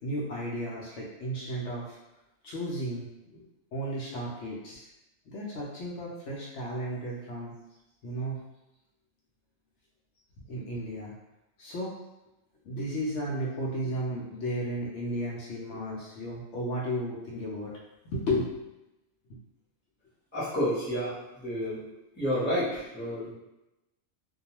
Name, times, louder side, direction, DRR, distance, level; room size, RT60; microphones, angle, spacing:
voice 1, 0.0-2.0 2.4-3.4 3.7-4.9 5.3-7.5 8.0-8.4 10.4-11.1 11.6-11.9 12.6-17.7 18.0-18.6 19.3-19.4, equal, 70° left, -4 dB, 0.9 m, -34 dB
voice 2, 20.3-21.8 22.1-23.3, equal, 10° left, -9 dB, 0.8 m, -30 dB
2.3 x 2.2 x 2.9 m, 0.95 s
omnidirectional pair, 1.3 m